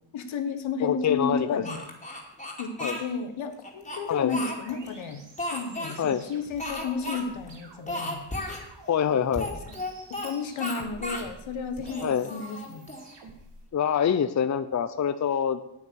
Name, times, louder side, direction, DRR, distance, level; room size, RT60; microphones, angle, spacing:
voice 1, 0.1-1.8 2.6-5.2 5.5-8.5 10.2-12.9, left 5 dB, 75° left, 9 dB, 1.4 m, -33 dB
voice 2, 0.8-1.6 2.8-3.0 4.1-4.4 6.0-6.2 8.9-9.5 12.0-12.3 13.7-15.6, left 8 dB, 35° left, 12 dB, 0.6 m, -25 dB
Speech, 1.6-3.0 3.6-4.9 5.4-6.0 6.6-7.2 7.5-7.6 7.9-8.6 9.3-10.3 10.6-11.3 11.8-13.1, left 1 dB, 15° left, 2.6 m, -34 dB
sound 1, 3.8-13.6, right 3 dB, 60° right, 2.2 m, -50 dB
8.6 x 8.5 x 6.4 m, 0.80 s
cardioid pair, 80°, 47 cm